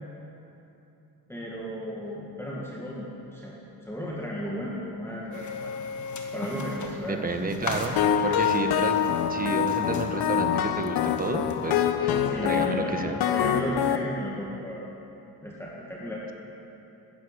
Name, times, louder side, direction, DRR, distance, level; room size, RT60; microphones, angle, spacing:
voice 1, 1.3-3.6 3.8-5.7 6.3-7.8 12.2-13.0 13.3-14.8 15.4-16.2, equal, 5° left, -5 dB, 1.8 m, -34 dB
sound 1, 5.3-11.9, left 4 dB, 50° left, 1.6 m, -39 dB
voice 2, 7.1-12.2 12.4-13.2, right 3 dB, 25° right, 6 dB, 1.1 m, -31 dB
sound 2, 8.0-14.0, left 9 dB, 75° left, 0.8 m, -25 dB
13.5 x 11.0 x 8.9 m, 2.9 s
wide cardioid pair, 155°, 37 cm